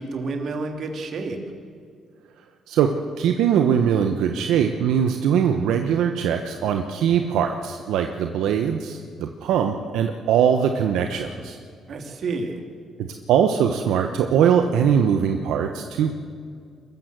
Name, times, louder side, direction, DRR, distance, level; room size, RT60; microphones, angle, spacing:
voice 1, 0.0-1.4 11.9-12.6, right 3 dB, 60° right, 4 dB, 3.0 m, -29 dB
voice 2, 3.2-11.6 13.0-16.1, right 8 dB, 85° right, 5 dB, 1.1 m, -21 dB
23.5 x 14.0 x 8.0 m, 2.1 s
cardioid pair, 90°, 0 cm